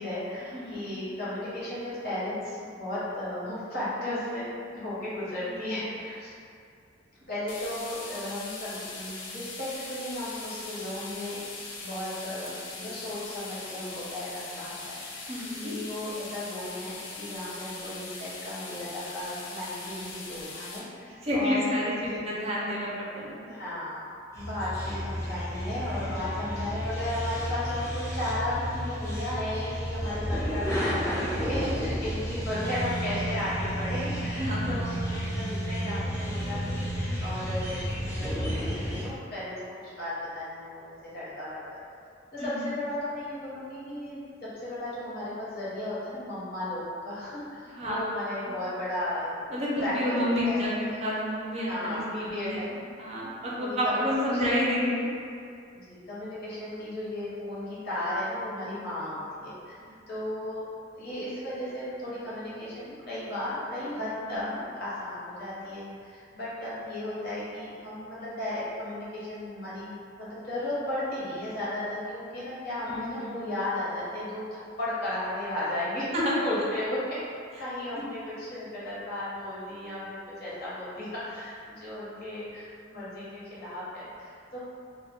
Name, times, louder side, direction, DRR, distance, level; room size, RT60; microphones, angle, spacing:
voice 1, 0.0-4.4 4.7-6.3 7.3-11.4 11.8-15.3 15.6-21.7 22.1-22.2 23.4-24.1 24.3-34.9 35.3-41.8 42.3-49.4 49.8-50.7 51.7-52.7 53.6-54.1 55.7-59.7 60.1-60.6 60.9-76.1 76.4-77.2 77.6-84.6, left 1 dB, 55° left, -10 dB, 0.9 m, -35 dB
voice 2, 0.5-1.0 15.3-15.7 21.2-23.4 26.0-26.3 34.4-34.7 42.4-42.7 47.7-48.6 49.5-55.1 64.2-64.6 72.9-73.4 76.1-76.4 78.0-78.1, equal, 35° right, -5 dB, 0.5 m, -30 dB
sound 1, 7.5-20.8, left 3 dB, 90° left, 0.4 m, -41 dB
sound 2, 24.3-39.1, equal, 15° left, 0.5 m, -32 dB
2.2 x 2.1 x 3.4 m, 2.4 s
head